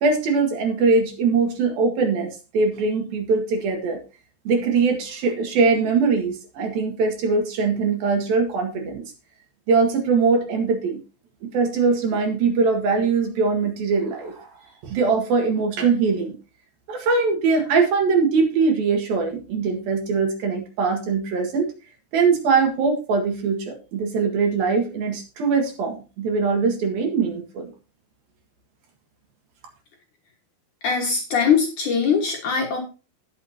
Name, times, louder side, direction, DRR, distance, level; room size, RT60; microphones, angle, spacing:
voice 1, 0.0-4.0 4.4-9.0 9.7-11.0 11.4-14.5 14.8-16.4 16.9-21.7 22.1-27.7, right 4 dB, 60° right, 3 dB, 3.3 m, -22 dB
voice 2, 30.8-32.8, left 6 dB, 55° left, 1 dB, 2.5 m, -21 dB
19.0 x 6.7 x 2.8 m, 0.32 s
omnidirectional pair, 5.1 m